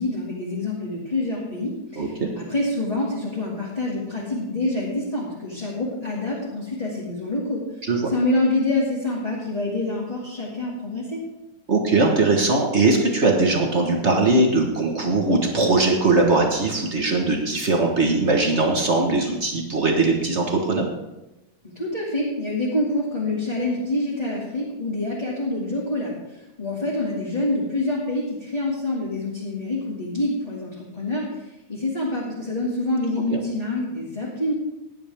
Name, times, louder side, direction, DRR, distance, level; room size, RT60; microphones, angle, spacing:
voice 1, 0.0-7.6 8.1-11.2 21.7-26.2 26.6-34.5, left 2 dB, 15° left, -7 dB, 2.1 m, -26 dB
voice 2, 2.0-2.3 7.8-8.1 11.7-20.9 33.3-33.4, right 3 dB, 60° right, 1 dB, 0.7 m, -20 dB
17.5 x 10.5 x 3.5 m, 1.0 s
omnidirectional pair, 3.5 m